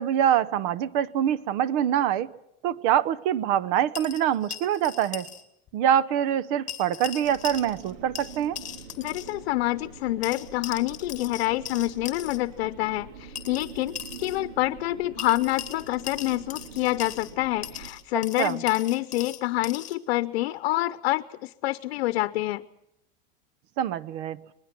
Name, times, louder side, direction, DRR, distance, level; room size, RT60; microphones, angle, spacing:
voice 1, 0.0-2.3 2.6-5.3 5.7-8.6 18.4-18.6 23.8-24.4, right 10 dB, 55° right, 0.9 m, -25 dB
sound 1, 3.9-5.4 5.7-5.8 6.7-7.9 8.2-9.3 10.2-12.4 13.4-14.4 15.2-17.3 17.6-20.0, left 9 dB, 25° left, 2.1 m, -39 dB
sound 2, 7.2-17.9, right 5 dB, 80° right, 4.1 m, -45 dB
voice 2, 9.0-22.6, left 17 dB, 75° left, 0.8 m, -27 dB
26.5 x 20.5 x 6.0 m
supercardioid pair, 155°, 30 cm